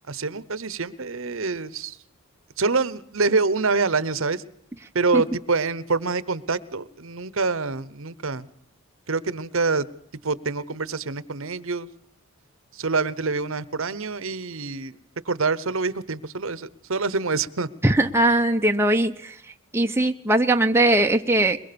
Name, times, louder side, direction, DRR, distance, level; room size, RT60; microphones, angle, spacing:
voice 1, 0.1-2.0 2.6-4.4 4.9-8.5 9.1-9.9 10.2-11.9 12.7-15.0 15.3-17.7, right 4 dB, 60° right, 18 dB, 1.0 m, -26 dB
voice 2, 17.8-19.3 19.7-21.6, right 1 dB, 10° right, 5 dB, 0.8 m, -20 dB
22.5 x 21.5 x 6.9 m, 0.67 s
head